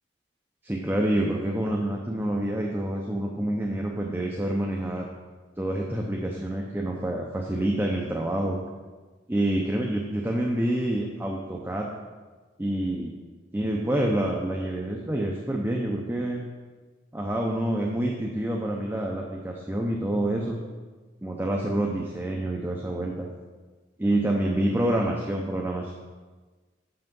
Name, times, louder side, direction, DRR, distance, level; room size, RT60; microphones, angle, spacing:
voice 1, 0.6-5.1 5.6-8.6 9.3-11.9 12.6-13.1 13.5-16.4 17.1-20.6 21.2-23.3 24.0-25.9, right 1 dB, 10° right, -1 dB, 0.6 m, -27 dB
6.3 x 5.8 x 5.3 m, 1.3 s
head